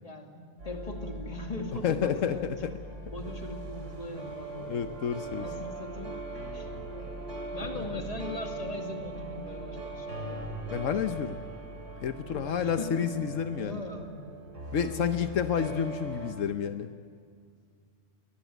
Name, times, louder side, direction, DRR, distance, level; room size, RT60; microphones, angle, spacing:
voice 1, 0.0-2.5 3.1-4.7 5.3-6.2 6.5-7.1 7.5-10.4 12.3-13.0 13.6-14.1 14.8-15.0, left 2 dB, 30° left, 2 dB, 2.6 m, -40 dB
sound 1, 0.6-16.3, right 2 dB, 70° right, 3.4 m, -40 dB
voice 2, 1.8-2.7 4.6-5.6 7.7-8.0 10.7-11.4 12.0-13.8 14.7-16.9, left 8 dB, 80° left, 9 dB, 1.2 m, -30 dB
23.0 x 19.5 x 9.2 m, 2.1 s
omnidirectional pair, 1.3 m